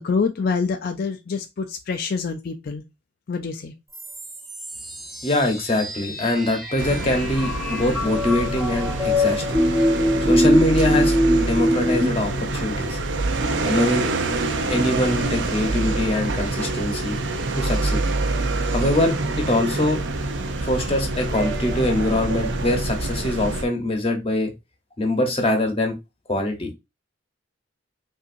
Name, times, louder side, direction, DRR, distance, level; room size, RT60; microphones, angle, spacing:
voice 1, 0.0-2.8 3.3-3.7, left 5 dB, 50° left, 0.4 m, -26 dB
sound 1, 3.9-12.1, equal, ahead, 0.9 m, -23 dB
voice 2, 5.2-9.6 10.2-13.0 13.6-14.1 14.7-17.2 17.5-18.0 18.7-20.0 20.6-24.5 25.0-25.9 26.3-26.7, left 1 dB, 30° left, 1.0 m, -23 dB
sound 2, 6.8-23.6, right 2 dB, 65° right, 0.6 m, -26 dB
5.4 x 2.7 x 2.6 m
head